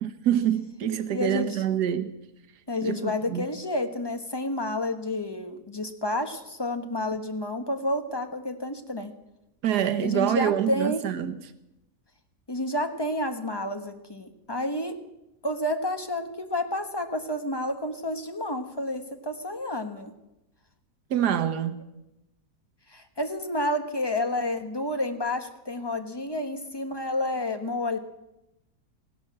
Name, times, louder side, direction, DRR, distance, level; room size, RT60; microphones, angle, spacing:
voice 1, 0.0-2.1 2.8-3.4 9.6-11.4 21.1-21.8, right 10 dB, 90° right, 1.5 m, -26 dB
voice 2, 1.1-1.6 2.7-9.1 10.0-11.0 12.5-14.9 15.4-20.1 22.9-28.0, left 1 dB, 15° left, 1.1 m, -30 dB
16.0 x 11.5 x 7.5 m
omnidirectional pair, 1.7 m